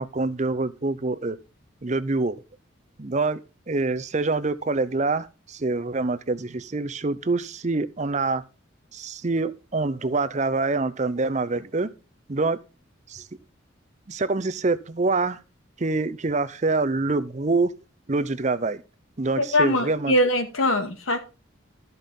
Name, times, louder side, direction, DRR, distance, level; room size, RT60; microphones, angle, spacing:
voice 1, 0.0-1.4 1.8-2.4 3.0-3.4 3.7-8.4 8.9-11.9 12.3-12.6 13.1-13.3 14.1-15.4 15.8-17.7 18.1-18.8 19.2-20.1, right 3 dB, 35° right, 0.6 m, -25 dB
voice 2, 19.4-21.2, left 1 dB, 85° left, 2.1 m, -22 dB
14.0 x 5.4 x 5.6 m
head